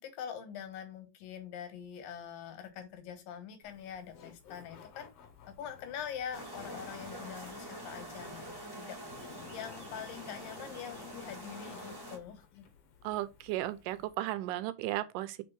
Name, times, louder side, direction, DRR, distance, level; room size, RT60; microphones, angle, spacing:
voice 1, 0.0-5.1 5.5-12.7, left 8 dB, 90° left, 2.8 m, -44 dB
Laughter, 3.6-14.1, left 7 dB, 65° left, 1.8 m, -54 dB
sound 1, 6.3-12.2, right 1 dB, 15° right, 0.9 m, -46 dB
voice 2, 13.0-15.4, right 15 dB, 80° right, 2.1 m, -35 dB
5.0 x 4.2 x 4.6 m
omnidirectional pair, 3.9 m